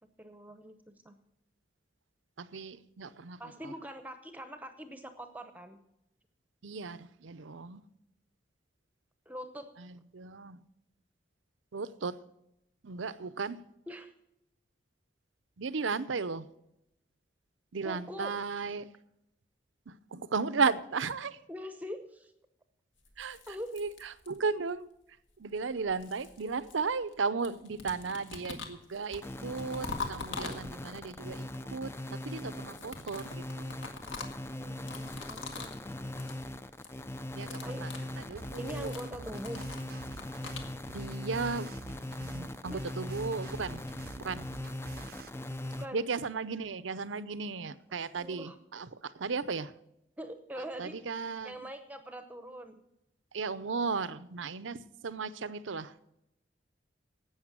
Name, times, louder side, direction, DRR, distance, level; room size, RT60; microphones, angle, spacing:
voice 1, 0.2-1.2 3.4-5.8 9.3-9.7 13.9-14.1 17.8-18.4 21.5-22.3 23.5-23.8 34.5-35.7 37.6-37.9 38.6-39.7 42.7-42.8 45.8-46.1 48.1-48.6 50.2-52.8, equal, 10° right, 0.7 m, -43 dB
voice 2, 2.4-3.7 6.6-7.8 9.8-10.6 11.7-12.2 12.8-13.6 15.6-16.5 17.7-18.9 19.9-21.4 23.2-23.4 23.7-24.9 25.4-33.7 37.3-37.9 38.2-38.9 40.9-41.7 42.1-43.8 44.2-44.5 45.9-49.7 50.8-51.6 53.3-55.9, right 4 dB, 90° right, 0.7 m, -35 dB
sound 1, 23.0-24.6 25.6-27.2 27.4-31.1 32.5-35.8 36.1-36.4 36.7-37.0 37.3-40.7, left 4 dB, 85° left, 1.8 m, -44 dB
sound 2, 29.1-45.9, left 1 dB, 15° left, 0.4 m, -40 dB
sound 3, 38.4-45.3, right 3 dB, 50° right, 0.5 m, -49 dB
12.0 x 8.7 x 7.5 m
head